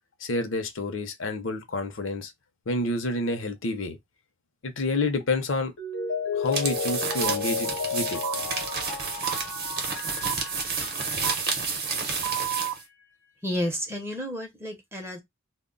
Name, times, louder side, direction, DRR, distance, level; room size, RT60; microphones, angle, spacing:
voice 1, 0.2-2.3 2.7-4.0 4.6-5.7 6.3-8.2, left 2 dB, 65° left, 0.6 m, -29 dB
Mallet percussion, 5.8-11.3 11.6-11.7, left 5 dB, 85° left, 0.9 m, -32 dB
sound 1, 6.5-12.8, right 5 dB, 45° right, 0.7 m, -30 dB
sound 2, 7.2-7.4 8.2-8.4 9.2-9.4 10.2-10.4 11.2-11.4 12.2-12.8, right 14 dB, 75° right, 0.3 m, -31 dB
voice 2, 13.4-15.2, left 1 dB, 10° right, 0.6 m, -31 dB
2.1 x 2.0 x 3.7 m
head